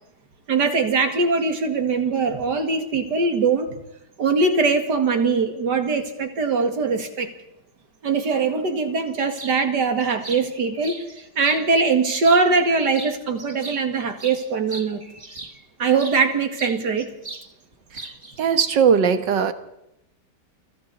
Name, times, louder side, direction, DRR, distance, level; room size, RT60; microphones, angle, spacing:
voice 1, 0.5-3.7 4.2-7.3 8.0-15.0 15.8-17.1, right 4 dB, 70° right, 6 dB, 2.7 m, -21 dB
sound 1, 9.3-9.6 10.0-11.7 12.1-12.7 12.9-16.2 16.6-17.5 17.7-18.4, right 2 dB, 25° right, 1.7 m, -38 dB
voice 2, 18.4-19.5, right 7 dB, 90° right, 9 dB, 2.1 m, -19 dB
29.5 x 24.5 x 4.2 m, 0.82 s
omnidirectional pair, 1.9 m